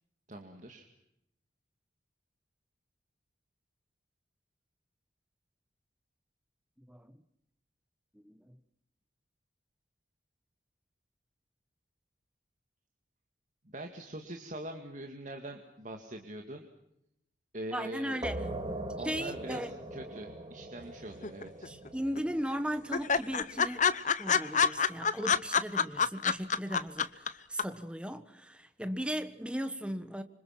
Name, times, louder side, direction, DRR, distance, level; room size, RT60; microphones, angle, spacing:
voice 1, 0.3-0.8 13.7-16.7 17.5-18.2 19.0-21.7, right 1 dB, 40° right, 2.1 m, -43 dB
voice 2, 6.8-7.2 8.1-8.6 17.7-18.5 19.0-19.7 21.6-23.9 24.2-30.2, equal, 5° right, 1.2 m, -37 dB
sound 1, 18.2-23.6, right 1 dB, 20° right, 2.5 m, -41 dB
sound 2, 21.2-21.9 22.2-22.3 22.5-22.6 22.9-27.3 27.6-27.7, left 6 dB, 40° left, 0.9 m, -27 dB
27.0 x 25.5 x 5.9 m
head